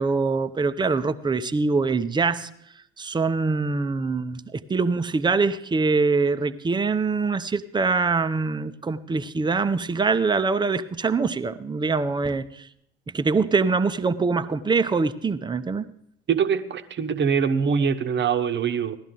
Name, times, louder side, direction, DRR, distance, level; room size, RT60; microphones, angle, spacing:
voice 1, 0.0-2.5 3.0-12.7 13.1-15.9, right 4 dB, 15° right, 12 dB, 0.6 m, -24 dB
voice 2, 16.3-19.0, right 6 dB, 35° right, 10 dB, 1.0 m, -23 dB
16.5 x 12.0 x 3.8 m, 0.72 s
figure-of-eight pair, 60°, 33 cm